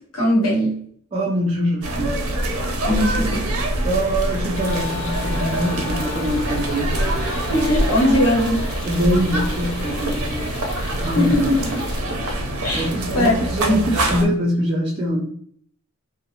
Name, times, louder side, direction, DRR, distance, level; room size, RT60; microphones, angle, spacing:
voice 1, 0.1-0.8 2.9-3.5 7.5-8.6 11.1-11.7 12.6-12.9 13.1-13.3 13.7-13.8, left 1 dB, 80° left, -2 dB, 0.9 m, -19 dB
voice 2, 1.1-2.2 3.5-7.0 8.8-10.5 11.0-11.6 12.7-15.3, equal, 25° right, -5 dB, 0.4 m, -23 dB
sound 1, 1.8-14.2, right 1 dB, 75° right, 0.5 m, -25 dB
sound 2, 4.4-9.6, left 5 dB, 5° left, 1.1 m, -36 dB
sound 3, 4.5-12.0, left 2 dB, 60° left, 0.6 m, -38 dB
2.5 x 2.1 x 2.7 m, 0.62 s
head